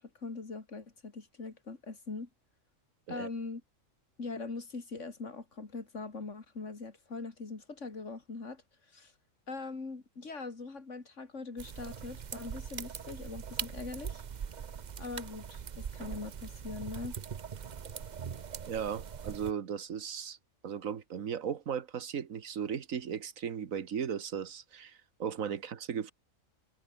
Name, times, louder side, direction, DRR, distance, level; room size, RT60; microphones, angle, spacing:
voice 1, 0.0-2.3 3.1-3.6 4.2-8.6 8.9-9.1 9.5-14.2 15.0-17.2, left 3 dB, 65° left, 3.1 m, -42 dB
sound 1, 11.6-19.5, right 7 dB, 45° right, 0.7 m, -41 dB
voice 2, 18.7-20.4 20.6-26.1, right 7 dB, 80° right, 1.7 m, -36 dB
omnidirectional pair, 1.4 m